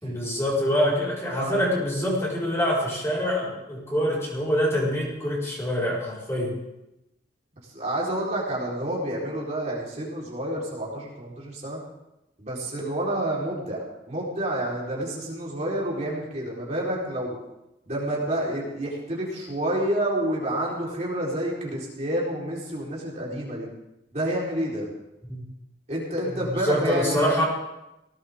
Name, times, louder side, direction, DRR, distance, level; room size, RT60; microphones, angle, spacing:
voice 1, 0.0-6.5 25.3-25.4 26.4-27.4, equal, 15° left, -6 dB, 5.0 m, -25 dB
voice 2, 7.7-11.8 12.4-17.4 17.9-23.7 24.1-24.9 25.9-27.3, right 1 dB, 40° right, -5 dB, 4.2 m, -29 dB
19.0 x 17.5 x 3.7 m, 0.92 s
head